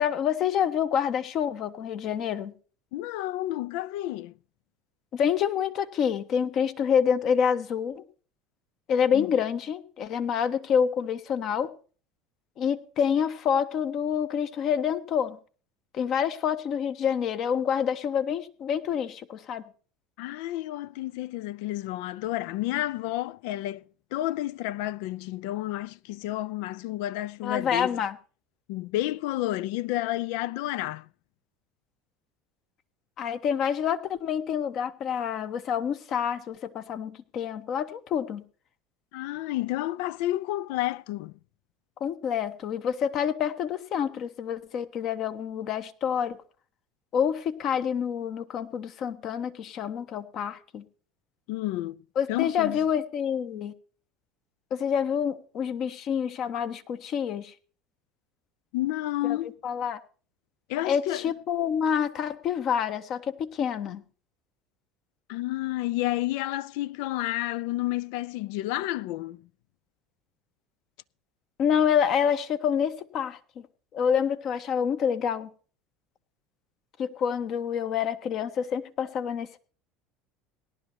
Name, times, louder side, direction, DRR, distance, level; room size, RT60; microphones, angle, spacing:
voice 1, 0.0-2.5 5.1-8.0 8.9-11.7 12.6-15.4 15.9-19.6 27.4-28.2 33.2-38.4 42.0-46.4 47.1-50.8 52.2-53.7 54.7-57.5 59.2-59.4 59.6-60.0 60.9-64.0 71.6-73.4 73.9-75.5 77.0-79.6, left 8 dB, 50° left, 1.2 m, -27 dB
voice 2, 2.9-4.3 9.1-9.3 20.2-23.8 24.1-28.0 28.7-31.1 39.1-41.3 51.5-52.0 52.3-52.8 58.7-59.6 60.7-61.2 65.3-69.4, left 16 dB, 70° left, 0.5 m, -30 dB
18.0 x 11.5 x 2.9 m
hypercardioid pair, 80°, 0 cm